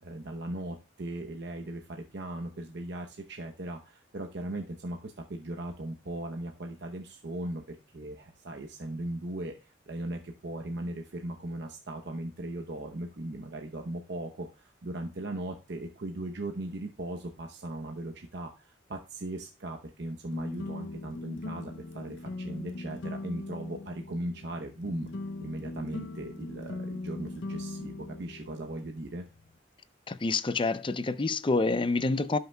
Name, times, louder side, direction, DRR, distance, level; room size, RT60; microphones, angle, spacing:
voice 1, 0.0-25.1 25.4-29.3, right 1 dB, 60° right, 0.8 m, -38 dB
sound 1, 20.3-29.6, left 2 dB, 70° left, 0.6 m, -40 dB
voice 2, 30.1-32.4, left 3 dB, 25° left, 0.5 m, -27 dB
17.0 x 5.7 x 2.2 m
head